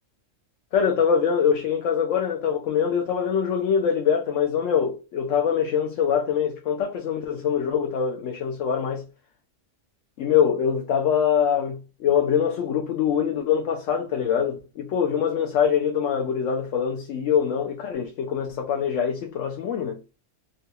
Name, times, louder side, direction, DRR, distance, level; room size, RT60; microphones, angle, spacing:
voice 1, 0.7-9.1 10.2-20.0, left 7 dB, 80° left, 1.0 m, -24 dB
3.8 x 2.2 x 2.7 m
omnidirectional pair, 1.3 m